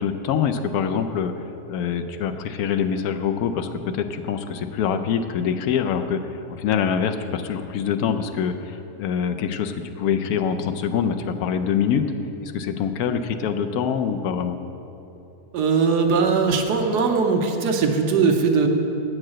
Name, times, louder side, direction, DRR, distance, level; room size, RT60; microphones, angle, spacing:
voice 1, 0.0-1.3 1.7-12.1 12.4-14.6, left 7 dB, 70° left, 8 dB, 1.0 m, -25 dB
voice 2, 15.5-18.7, right 5 dB, 85° right, 3 dB, 1.4 m, -20 dB
8.7 x 4.7 x 7.5 m, 2.8 s
omnidirectional pair, 1.7 m